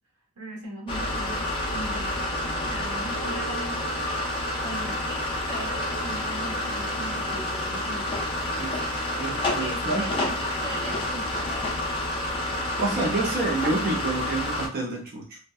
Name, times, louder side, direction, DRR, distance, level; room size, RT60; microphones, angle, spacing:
voice 1, 0.4-8.2 9.6-11.5, right 1 dB, 90° right, -1 dB, 1.0 m, -39 dB
sound 1, 0.9-14.7, left 1 dB, 25° left, 0.4 m, -29 dB
voice 2, 8.6-8.9 9.2-10.3 12.8-15.4, right 2 dB, 45° right, -3 dB, 0.5 m, -28 dB
2.6 x 2.1 x 2.2 m, 0.36 s
head